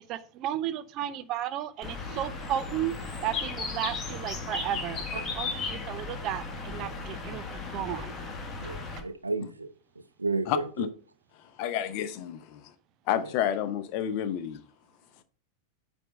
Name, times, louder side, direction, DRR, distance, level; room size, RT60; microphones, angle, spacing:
voice 1, 0.1-2.9 3.2-8.1, right 11 dB, 35° right, 0.7 m, -34 dB
Bird, 1.8-9.0, left 4 dB, 20° left, 1.7 m, -36 dB
voice 2, 8.6-9.7 10.2-10.9 13.2-13.3, right 3 dB, 80° right, 0.7 m, -32 dB
voice 3, 10.5-10.9 11.6-12.6 13.1-14.6, left 10 dB, 45° left, 0.8 m, -30 dB
9.1 x 3.6 x 5.1 m
figure-of-eight pair, 90°, 0 cm